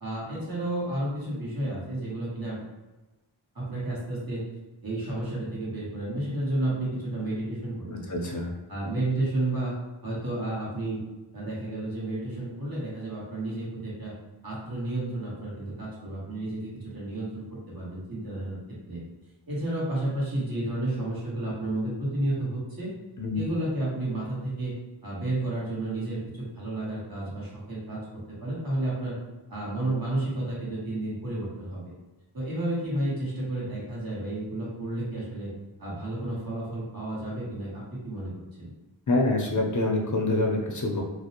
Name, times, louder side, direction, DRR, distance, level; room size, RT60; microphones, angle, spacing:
voice 1, 0.0-2.6 3.5-4.4 4.8-8.3 8.7-9.8 10.0-11.0 11.3-14.1 14.4-18.6 18.9-19.0 19.5-22.9 23.3-24.7 25.0-28.0 28.3-29.2 29.5-31.9 32.3-35.5 35.8-38.3 38.6-38.7, right 1 dB, 50° right, -6 dB, 1.2 m, -31 dB
voice 2, 7.9-8.5 23.2-23.4 39.1-41.0, left 2 dB, 40° left, 0 dB, 0.5 m, -26 dB
2.5 x 2.0 x 2.8 m, 1.1 s
wide cardioid pair, 70°, 47 cm